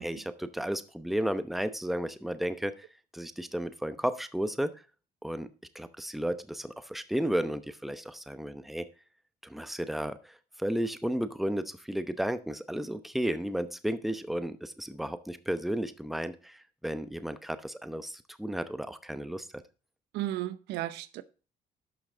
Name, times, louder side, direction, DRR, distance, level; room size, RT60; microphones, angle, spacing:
voice 1, 0.0-2.9 3.1-4.7 5.2-5.5 5.7-8.9 9.4-10.3 10.6-19.5, equal, ahead, 0.8 m, -33 dB
voice 2, 20.1-21.2, right 14 dB, 90° right, 0.7 m, -35 dB
11.5 x 5.9 x 3.9 m
cardioid pair, 110°, 17 cm